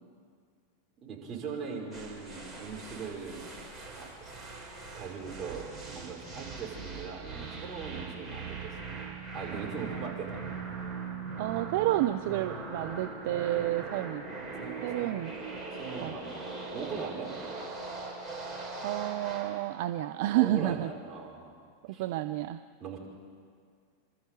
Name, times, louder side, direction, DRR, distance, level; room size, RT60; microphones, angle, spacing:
voice 1, 1.0-3.5 4.0-4.3 4.9-9.1 9.3-10.3 14.6-15.1 15.7-16.4 16.7-17.3 20.4-21.5 21.9-22.0 22.8-23.0, right 5 dB, 25° right, -3 dB, 5.4 m, -40 dB
sound 1, 1.9-19.6, right 4 dB, 10° right, 5.8 m, -40 dB
voice 2, 11.4-14.2 14.8-15.3 16.0-16.1 18.8-20.9 21.8-22.6, right 15 dB, 50° right, 9 dB, 0.6 m, -30 dB
27.5 x 13.0 x 8.4 m, 2.1 s
figure-of-eight pair, 90°, 0 cm